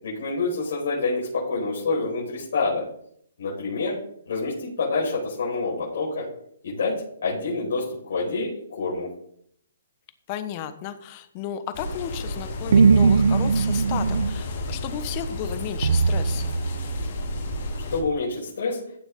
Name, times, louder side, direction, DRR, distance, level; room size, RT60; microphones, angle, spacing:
voice 1, 0.0-2.8 3.4-4.0 4.3-6.3 6.6-6.9 7.2-9.1 17.9-18.8, left 3 dB, 65° left, -6 dB, 5.2 m, -27 dB
voice 2, 10.3-16.6, left 9 dB, 30° left, 11 dB, 1.1 m, -34 dB
sound 1, 11.7-18.0, left 1 dB, 50° left, 4.1 m, -32 dB
sound 2, 12.7-14.4 15.8-17.1, right 5 dB, 75° right, 0.6 m, -20 dB
15.5 x 7.2 x 3.8 m, 0.67 s
hypercardioid pair, 160°, 0 cm